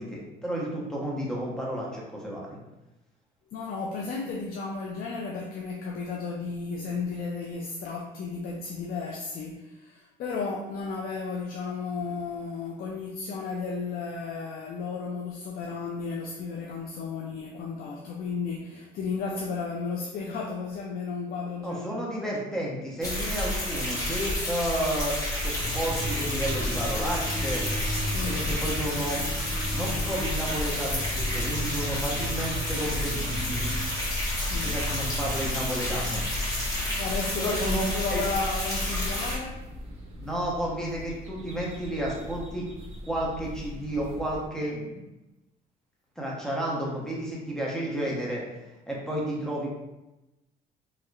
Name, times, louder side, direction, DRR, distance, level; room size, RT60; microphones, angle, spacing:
voice 1, 0.0-2.6 21.6-25.2 25.4-27.6 28.2-29.2 29.7-33.7 34.5-36.2 37.4-38.2 40.1-42.7 43.1-45.0 46.2-48.4 48.9-49.7, right 1 dB, 5° left, -4 dB, 1.0 m, -32 dB
voice 2, 3.5-22.0 28.0-28.4 34.4-34.8 37.0-37.7 37.9-39.6, left 4 dB, 60° left, -1 dB, 0.5 m, -34 dB
sound 1, 23.0-39.4, left 1 dB, 20° left, 1.4 m, -30 dB
sound 2, 25.6-44.5, equal, 40° right, 0.9 m, -38 dB
4.3 x 2.9 x 2.4 m, 0.99 s
cardioid pair, 110°, 17 cm